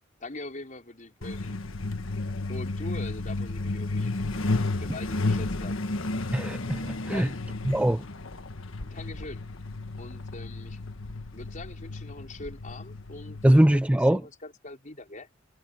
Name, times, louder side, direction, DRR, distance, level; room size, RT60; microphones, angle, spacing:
voice 1, 0.2-1.6 2.5-4.1 4.7-5.8 7.1-7.4 8.8-9.4 10.0-10.8 11.3-15.3, left 2 dB, 40° left, 4.8 m, -42 dB
Truck, 1.2-13.5, left 2 dB, 85° left, 1.5 m, -32 dB
voice 2, 6.3-7.3 7.7-8.0 13.4-14.2, right 1 dB, 5° right, 0.4 m, -21 dB
head